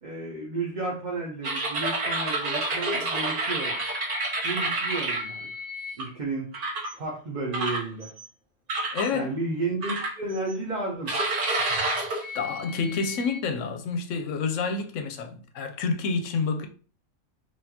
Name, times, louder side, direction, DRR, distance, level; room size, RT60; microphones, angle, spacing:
voice 1, 0.0-3.8 4.4-5.5 6.0-8.1 9.1-11.1, right 3 dB, 40° right, 0.7 m, -32 dB
sound 1, 1.4-6.0 6.5-6.9 7.5-8.3 8.7-9.1 9.8-10.5 11.1-13.4, right 2 dB, 55° right, 1.6 m, -29 dB
voice 2, 8.9-9.3 12.3-16.7, left 4 dB, 70° left, 0.9 m, -28 dB
4.1 x 2.6 x 2.8 m
omnidirectional pair, 1.4 m